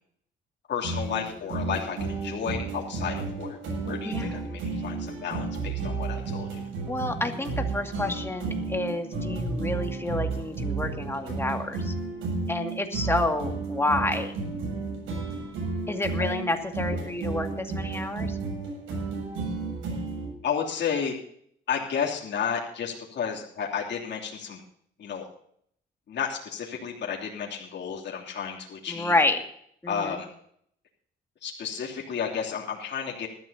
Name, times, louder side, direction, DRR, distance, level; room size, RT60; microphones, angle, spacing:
voice 1, 0.7-3.6 3.8-6.6 16.2-16.3 20.4-21.1 21.7-24.6 25.0-25.3 26.1-29.2 29.9-30.3 31.4-33.3, left 7 dB, 65° left, -2 dB, 3.0 m, -32 dB
sound 1, 0.8-20.3, right 3 dB, 90° right, 7.6 m, -32 dB
voice 2, 4.0-4.4 6.9-11.9 12.5-14.3 15.9-18.4 28.9-29.4 29.8-30.2, left 2 dB, 10° left, 4 dB, 2.3 m, -29 dB
20.5 x 13.5 x 2.9 m, 0.65 s
cardioid pair, 90°, 20 cm